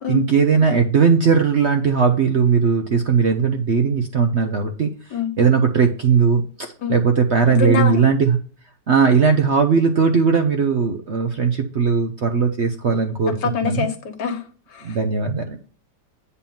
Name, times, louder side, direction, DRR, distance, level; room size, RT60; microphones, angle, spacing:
voice 1, 0.1-4.9 5.4-8.4 8.9-13.9 14.8-15.6, right 5 dB, 50° right, 0.8 m, -18 dB
voice 2, 7.5-8.0 13.3-14.4 14.7-15.0, left 4 dB, 70° left, 2.0 m, -24 dB
8.9 x 4.2 x 5.5 m
omnidirectional pair, 1.9 m